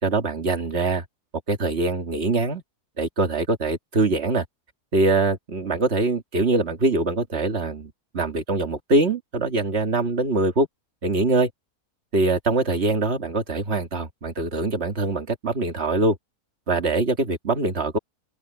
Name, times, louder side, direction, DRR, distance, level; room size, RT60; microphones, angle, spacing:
voice 1, 0.0-1.0 1.5-2.6 3.0-4.4 4.9-10.7 11.0-11.5 12.1-16.2 16.7-18.0, right 3 dB, 40° right, 2.2 m, -23 dB
open air
omnidirectional pair, 1.7 m